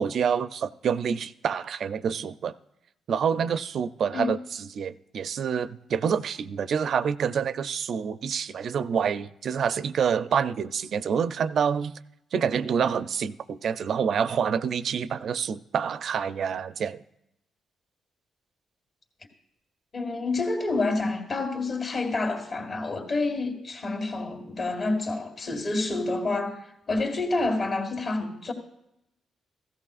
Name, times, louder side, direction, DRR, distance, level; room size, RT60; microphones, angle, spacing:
voice 1, 0.0-2.5 3.1-11.9 12.3-17.0, right 7 dB, 65° right, 0.5 m, -27 dB
voice 2, 19.9-28.5, left 3 dB, 45° left, 1.9 m, -28 dB
16.0 x 13.5 x 2.5 m
cardioid pair, 75°, 0 cm